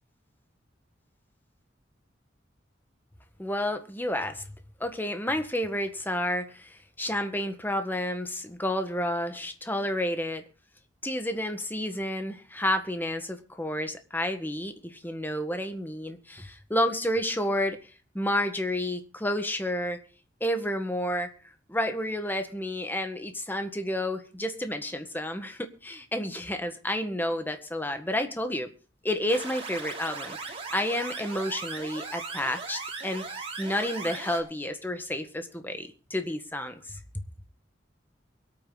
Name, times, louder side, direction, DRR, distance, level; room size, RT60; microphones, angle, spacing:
voice 1, 3.4-4.4 4.8-10.4 11.0-17.8 18.1-20.0 20.4-21.3 21.7-28.7 29.0-37.0, left 1 dB, 10° left, 7 dB, 1.6 m, -30 dB
sound 1, 29.3-34.4, right 4 dB, 30° right, 3.2 m, -38 dB
23.5 x 9.0 x 4.0 m, 0.35 s
head